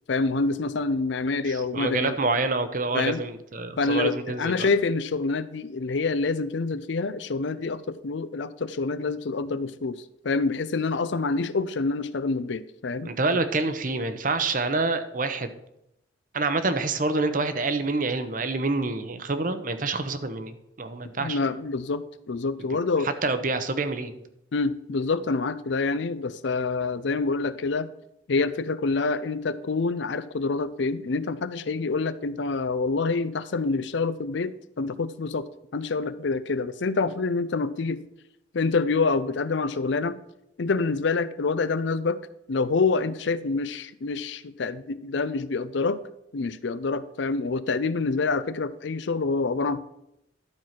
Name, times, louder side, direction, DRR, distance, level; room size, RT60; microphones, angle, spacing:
voice 1, 0.1-2.2 2.9-3.2 3.8-13.1 21.2-23.1 24.5-27.9 28.3-35.5 35.7-38.0 38.5-40.2 40.6-42.2 42.5-46.0 46.3-49.8, left 4 dB, 70° left, 15 dB, 0.5 m, -27 dB
voice 2, 1.4-4.7 13.0-15.5 16.3-21.4 23.0-24.3, right 3 dB, 45° right, 9 dB, 0.8 m, -27 dB
11.5 x 4.6 x 5.8 m, 0.82 s
head